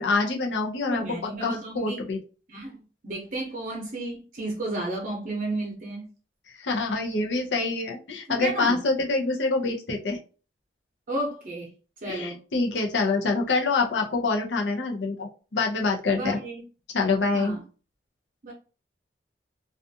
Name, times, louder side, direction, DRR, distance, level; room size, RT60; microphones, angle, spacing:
voice 1, 0.0-1.0 1.4-2.2 6.6-10.2 12.1-16.4 16.9-17.6, left 3 dB, 90° left, 1 dB, 0.6 m, -26 dB
voice 2, 0.9-2.0 2.5-2.8 3.0-6.1 8.3-8.8 11.1-11.7 12.0-12.4 16.1-16.6 17.3-17.6 18.4-18.5, right 2 dB, 45° right, -1 dB, 0.7 m, -32 dB
2.4 x 2.3 x 2.7 m, 0.36 s
head